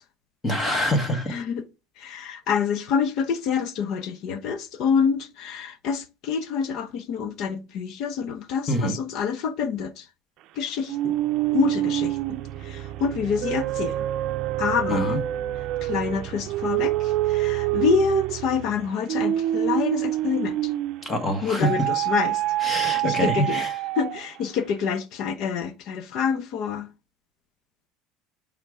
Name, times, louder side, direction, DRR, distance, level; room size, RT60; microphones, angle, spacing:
voice 1, 0.4-1.4 8.7-8.9 14.9-15.2 21.0-21.7 22.6-23.7, equal, 20° left, 1.4 m, -25 dB
voice 2, 1.3-1.6 2.0-10.1 10.6-11.1 11.5-12.4 12.6-14.1 14.6-15.2 15.8-20.7 21.4-23.7 24.0-26.9, left 6 dB, 55° left, 0.9 m, -27 dB
sound 1, 10.9-21.1 21.6-24.4, right 14 dB, 55° right, 0.5 m, -26 dB
9.0 x 3.6 x 4.9 m
supercardioid pair, 130°, 0 cm